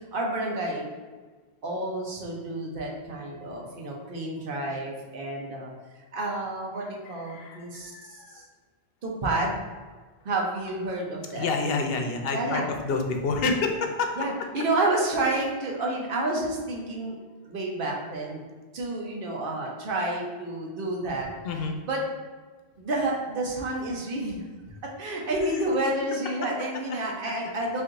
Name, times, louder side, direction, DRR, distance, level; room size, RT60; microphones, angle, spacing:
voice 1, 0.1-0.9 1.6-5.7 6.1-8.4 9.0-9.6 10.2-11.5 12.3-12.6 14.2-17.1 17.4-18.4 18.7-21.3 21.9-22.0 22.8-24.4 25.0-27.8, right 2 dB, 60° right, -2 dB, 1.0 m, -29 dB
voice 2, 6.8-8.5 11.3-14.6 21.4-21.8 25.5-25.6 26.4-26.5, left 4 dB, 70° left, 3 dB, 0.8 m, -29 dB
4.2 x 2.6 x 3.8 m, 1.4 s
omnidirectional pair, 1.1 m